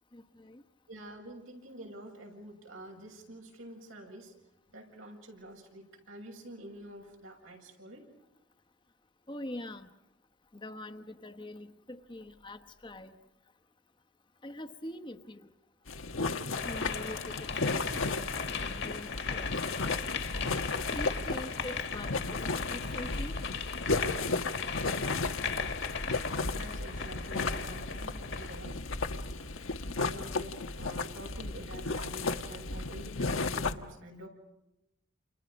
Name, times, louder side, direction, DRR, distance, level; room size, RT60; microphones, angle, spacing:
voice 1, 0.9-4.3 4.7-8.0 17.5-17.8 26.5-28.8 29.9-34.3, right 1 dB, 85° right, 2 dB, 7.4 m, -47 dB
voice 2, 9.3-9.9 10.6-11.7 12.1-13.1 14.4-15.5 16.6-17.4 17.7-20.1 20.9-22.1 22.7-23.3, left 1 dB, 25° left, 6 dB, 1.0 m, -43 dB
sound 1, 15.9-33.7, left 3 dB, 90° left, 1.4 m, -34 dB
sound 2, 16.6-28.6, left 5 dB, 60° left, 1.9 m, -37 dB
29.5 x 29.5 x 5.3 m, 0.91 s
head